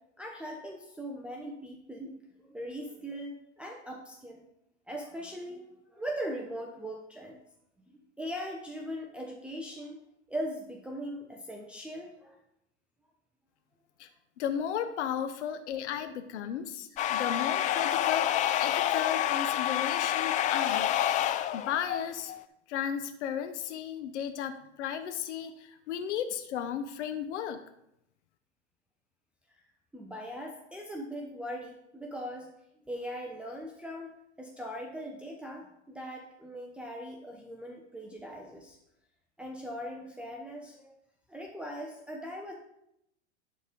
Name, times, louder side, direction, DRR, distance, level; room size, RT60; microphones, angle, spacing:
voice 1, 0.2-4.4 4.9-7.4 7.9-10.0 10.3-12.4 29.5-29.6 29.9-32.5 32.9-34.1 34.4-38.8 39.4-40.9 41.3-42.5, equal, 5° right, -1 dB, 0.9 m, -40 dB
voice 2, 14.4-22.3 22.7-27.6, left 8 dB, 80° left, 9 dB, 0.8 m, -35 dB
sound 1, 17.0-22.4, left 12 dB, 25° left, 0.3 m, -28 dB
10.5 x 4.2 x 5.1 m, 0.81 s
hypercardioid pair, 105°, 34 cm